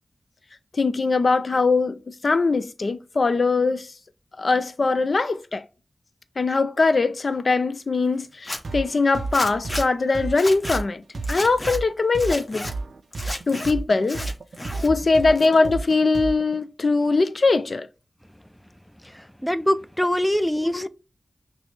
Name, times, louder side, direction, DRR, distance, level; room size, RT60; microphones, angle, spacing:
voice 1, 0.7-3.9 4.4-5.6 6.4-11.0 11.3-12.7 13.5-14.2 14.8-17.9 20.6-20.9, left 3 dB, 65° left, 0.4 m, -21 dB
Zipper (clothing), 8.3-8.6 9.3-9.9 10.3-10.8 11.2-11.8 12.2-12.7 13.1-13.7 14.0-14.9 15.2-15.8, left 1 dB, 35° left, 1.2 m, -33 dB
sound 1, 8.6-16.6, right 3 dB, 80° right, 0.4 m, -32 dB
voice 2, 19.0-20.9, left 1 dB, 5° left, 0.4 m, -24 dB
6.0 x 2.0 x 3.2 m
cardioid pair, 45°, 0 cm